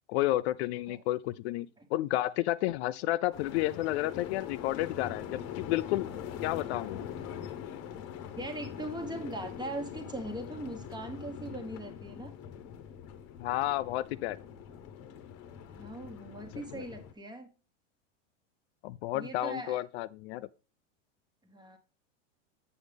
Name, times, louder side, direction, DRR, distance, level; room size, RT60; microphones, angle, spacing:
voice 1, 0.1-6.1 6.4-7.1 13.4-14.4 16.7-16.8 18.8-20.5, left 16 dB, 60° left, 0.5 m, -31 dB
sound 1, 3.3-17.1, left 9 dB, 45° left, 1.0 m, -43 dB
voice 2, 8.4-12.3 15.7-17.5 19.1-19.8 21.4-21.8, right 1 dB, 10° right, 1.2 m, -40 dB
7.8 x 6.4 x 3.4 m
supercardioid pair, 120°, 37 cm